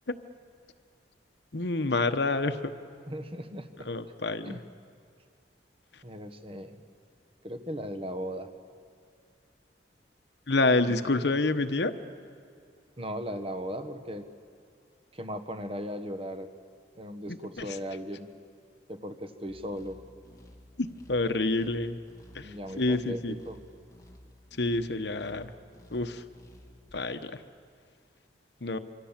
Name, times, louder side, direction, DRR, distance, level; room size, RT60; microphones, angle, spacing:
voice 1, 1.5-2.7 3.8-4.5 10.5-11.9 17.3-17.8 20.8-22.0 22.3-23.3 24.6-25.5 25.9-26.2 26.9-27.4 28.6-28.8, left 2 dB, 65° left, 10 dB, 1.0 m, -28 dB
voice 2, 3.1-3.9 4.5-4.6 6.0-6.8 7.4-8.5 13.0-14.3 15.1-16.5 16.9-18.3 18.9-20.0 22.4-23.6, equal, 30° right, 8 dB, 1.4 m, -37 dB
sound 1, 19.5-27.0, equal, 20° left, 2.5 m, -54 dB
26.5 x 24.0 x 7.4 m, 2.2 s
head